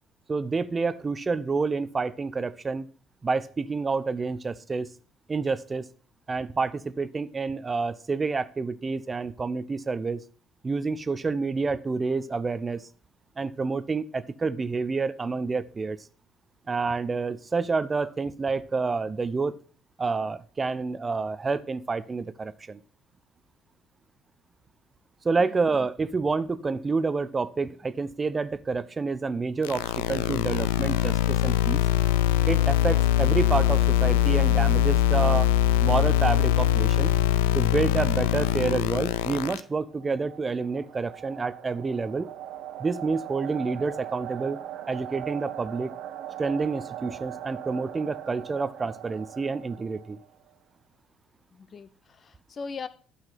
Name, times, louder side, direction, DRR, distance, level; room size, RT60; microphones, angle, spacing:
voice 1, 0.3-2.9 3.2-4.9 5.3-5.9 6.3-10.2 10.6-12.9 13.4-16.0 16.7-19.5 20.0-22.8 25.2-31.8 32.5-35.5 35.8-37.1 37.5-42.3 42.8-44.6 44.9-45.9 46.4-50.2, right 4 dB, 25° right, 0.6 m, -28 dB
sound 1, 29.6-39.6, left 12 dB, 75° left, 0.5 m, -22 dB
sound 2, 39.6-50.4, right 11 dB, 60° right, 1.1 m, -40 dB
voice 2, 51.5-52.9, left 5 dB, 40° left, 0.8 m, -39 dB
11.5 x 5.7 x 5.8 m
figure-of-eight pair, 55°, 0 cm